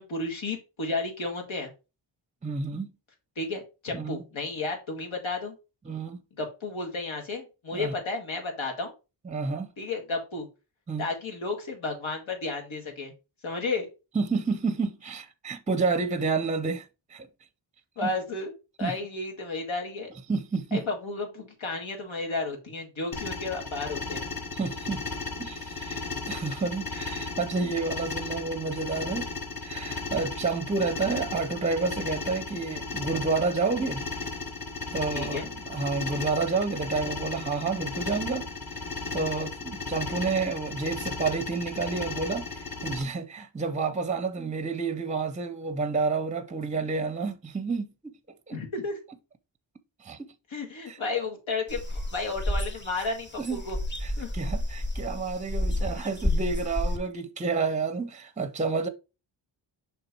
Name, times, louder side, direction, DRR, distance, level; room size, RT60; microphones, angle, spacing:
voice 1, 0.0-1.7 3.4-5.5 6.4-8.9 9.8-10.5 11.0-13.1 13.4-13.9 18.0-18.5 18.8-20.1 20.7-24.3 35.1-35.5 48.5-49.0 50.5-53.8 54.2-54.3, left 3 dB, 80° left, 2.0 m, -32 dB
voice 2, 2.4-2.9 3.9-4.2 5.9-6.2 7.7-7.9 9.2-9.7 10.9-11.1 14.1-17.3 18.0-18.1 18.8-19.0 20.3-20.8 24.5-25.0 25.4-29.3 29.6-34.0 34.9-38.5 38.7-38.8 39.1-48.1 48.5-48.6 50.0-50.3 50.9-51.0 53.4-53.6 54.0-58.9, right 4 dB, 15° right, 0.6 m, -30 dB
sound 1, 23.1-43.0, left 3 dB, 45° left, 1.1 m, -35 dB
sound 2, 51.7-57.0, left 1 dB, 20° left, 1.1 m, -30 dB
6.0 x 3.4 x 4.5 m
wide cardioid pair, 95°, 47 cm